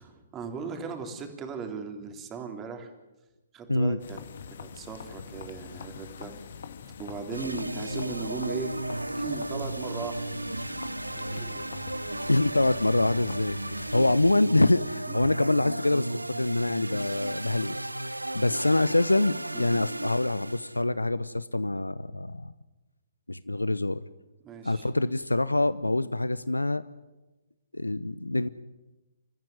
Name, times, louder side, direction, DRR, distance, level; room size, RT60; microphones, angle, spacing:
voice 1, 0.0-2.9 3.5-4.2 4.6-6.4 7.0-8.8 9.2-10.4 11.2-11.6 15.1-15.3 19.5-19.8 24.4-24.9, right 5 dB, 20° right, 4 dB, 3.6 m, -38 dB
voice 2, 3.7-4.0 11.3-11.4 12.2-22.5 23.3-24.0 24.6-26.8 27.7-28.5, left 2 dB, 85° left, 16 dB, 0.8 m, -25 dB
sound 1, 4.0-14.4, left 6 dB, 55° left, 2.0 m, -44 dB
sound 2, 7.3-20.8, right 1 dB, 90° right, 0.7 m, -34 dB
30.0 x 14.5 x 9.5 m, 1.1 s
figure-of-eight pair, 125°, 0 cm